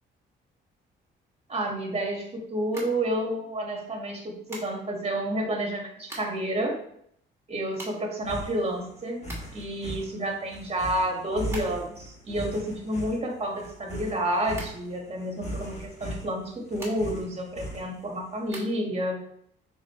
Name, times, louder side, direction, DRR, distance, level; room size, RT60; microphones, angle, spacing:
voice 1, 1.5-6.8 7.5-19.2, right 1 dB, 30° right, 0 dB, 1.9 m, -30 dB
sound 1, 2.7-3.6 4.5-5.1 5.7-6.5 6.8-6.9 7.1-9.7 10.2-12.1 12.3-14.1 14.5-15.5 16.3-17.3 17.7-18.7, right 1 dB, 15° right, 2.3 m, -44 dB
sound 2, 8.2-18.2, equal, 35° left, 1.8 m, -39 dB
6.6 x 4.5 x 3.2 m, 0.70 s
cardioid pair, 90°, 20 cm